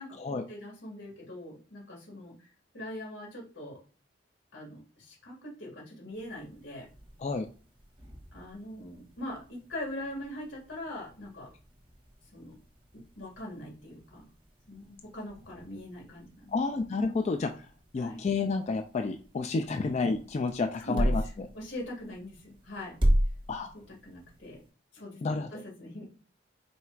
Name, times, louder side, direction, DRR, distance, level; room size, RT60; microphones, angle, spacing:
voice 1, 0.0-2.5 2.7-3.8 4.5-6.9 8.3-11.5 12.3-12.6 13.2-14.3 14.7-16.5 18.0-18.2 19.7-19.9 20.8-23.0 23.7-24.6 24.9-26.0, left 1 dB, 85° left, -2 dB, 1.9 m, -42 dB
sound 1, 6.1-24.7, equal, 30° right, 1.0 m, -37 dB
voice 2, 16.5-17.5 17.9-21.5 23.5-23.7 25.2-25.5, left 4 dB, 35° left, 6 dB, 0.3 m, -30 dB
4.1 x 2.4 x 4.4 m, 0.37 s
head